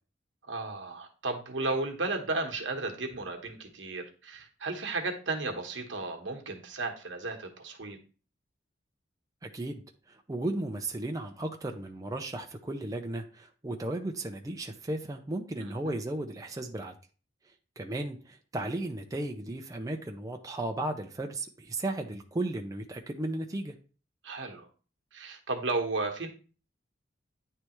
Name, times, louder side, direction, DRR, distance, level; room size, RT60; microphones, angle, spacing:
voice 1, 0.4-8.0 15.6-16.0 24.2-24.7 25.1-26.3, right 3 dB, 75° right, 3 dB, 1.1 m, -34 dB
voice 2, 9.4-9.8 10.1-16.9 17.8-23.7, right 1 dB, 20° right, 3 dB, 0.5 m, -35 dB
9.6 x 3.3 x 3.0 m, 0.37 s
head